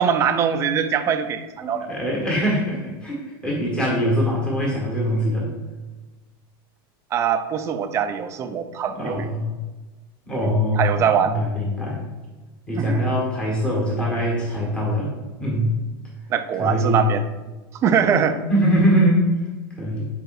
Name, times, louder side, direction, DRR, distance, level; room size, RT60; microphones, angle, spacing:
voice 1, 0.0-1.9 7.1-9.3 10.4-11.4 12.8-13.1 16.3-17.2 17.8-18.4, right 7 dB, 20° right, 8 dB, 0.4 m, -22 dB
voice 2, 1.6-5.5 9.0-9.5 10.3-12.0 12.7-15.1 15.4-15.7 16.6-17.1 18.5-19.3 19.8-20.1, equal, 10° left, -4 dB, 1.4 m, -22 dB
10.5 x 5.0 x 2.5 m, 1.2 s
supercardioid pair, 160°, 13 cm